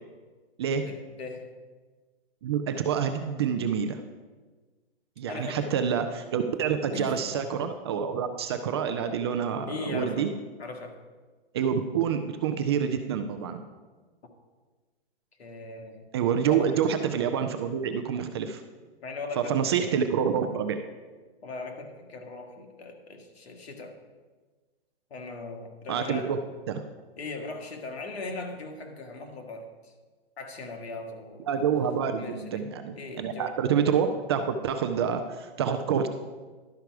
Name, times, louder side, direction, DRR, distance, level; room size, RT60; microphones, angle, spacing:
voice 1, 0.8-1.5 5.3-5.8 6.9-7.2 9.7-10.3 10.6-11.0 15.4-16.0 16.5-16.8 19.0-19.6 21.4-24.0 25.1-26.4 27.2-29.9 30.4-31.7 32.2-32.7 33.0-33.6, left 3 dB, 75° left, 4 dB, 1.9 m, -39 dB
voice 2, 2.4-4.0 5.2-10.3 11.5-13.6 16.1-18.6 19.4-20.8 25.9-26.4 26.7-26.8 31.5-36.1, right 7 dB, 25° right, 8 dB, 0.4 m, -27 dB
12.0 x 5.8 x 4.6 m, 1.3 s
hypercardioid pair, 145°, 32 cm